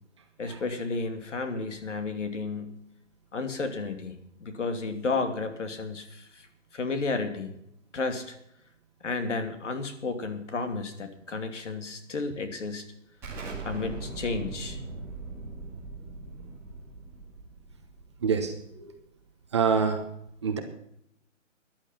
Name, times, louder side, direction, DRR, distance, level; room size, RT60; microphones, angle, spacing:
voice 1, 0.4-2.8 3.3-4.1 4.4-6.5 6.7-7.5 7.9-8.4 9.0-12.9 13.6-14.8, left 3 dB, 70° left, 7 dB, 2.8 m, -32 dB
Explosion, 13.2-18.7, right 3 dB, 5° right, 2.0 m, -40 dB
voice 2, 18.2-18.9 19.5-20.0 20.4-20.6, right 6 dB, 20° right, 5 dB, 1.1 m, -26 dB
14.0 x 11.0 x 5.7 m, 0.75 s
hypercardioid pair, 180°, 38 cm